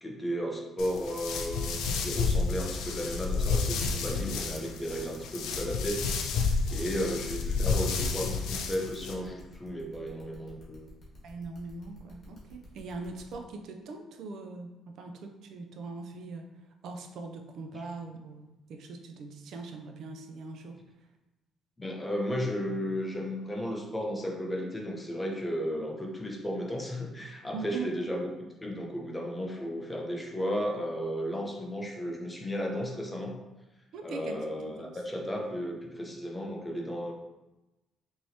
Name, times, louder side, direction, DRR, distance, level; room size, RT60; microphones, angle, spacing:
voice 1, 0.0-10.9 21.8-28.3 28.6-33.3 34.0-37.1, equal, 10° left, 0 dB, 0.6 m, -34 dB
sound 1, 0.8-9.1, left 4 dB, 90° left, 0.5 m, -31 dB
voice 2, 6.7-7.0 11.2-16.5 16.8-20.8 27.5-27.9 33.9-35.0, right 3 dB, 65° right, 4 dB, 0.4 m, -41 dB
sound 2, 8.4-13.3, right 1 dB, 40° left, 1.5 m, -54 dB
4.5 x 3.0 x 2.8 m, 1.0 s
cardioid pair, 140°, 0 cm